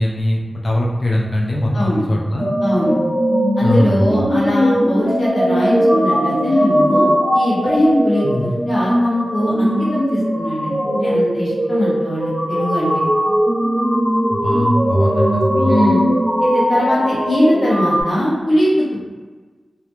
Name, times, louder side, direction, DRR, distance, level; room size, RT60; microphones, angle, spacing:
voice 1, 0.0-2.5 3.6-4.2 8.2-8.5 14.3-15.8, left 1 dB, 45° left, -2 dB, 0.4 m, -20 dB
sound 1, 2.4-18.0, equal, 15° right, 1.0 m, -19 dB
voice 2, 2.6-3.0 3.6-7.1 7.3-10.7 11.0-12.9 15.7-16.1 16.4-18.8, equal, 80° left, -10 dB, 0.8 m, -20 dB
2.4 x 2.1 x 2.9 m, 1.4 s
wide cardioid pair, 105°, 0 cm